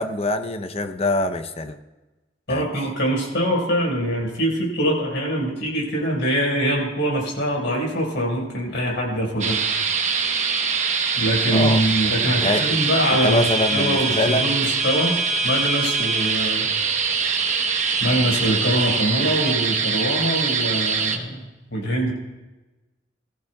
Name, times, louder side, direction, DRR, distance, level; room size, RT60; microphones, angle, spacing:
voice 1, 0.0-1.8 2.5-2.6 11.5-11.8 12.4-12.8 13.2-14.5, left 1 dB, 35° left, 9 dB, 0.7 m, -24 dB
voice 2, 2.5-9.6 11.2-15.2 15.4-16.7 18.0-22.1, equal, 85° left, -2 dB, 4.9 m, -23 dB
sound 1, 9.4-21.2, right 5 dB, 40° right, 1.0 m, -23 dB
20.5 x 14.5 x 2.3 m, 1.1 s
head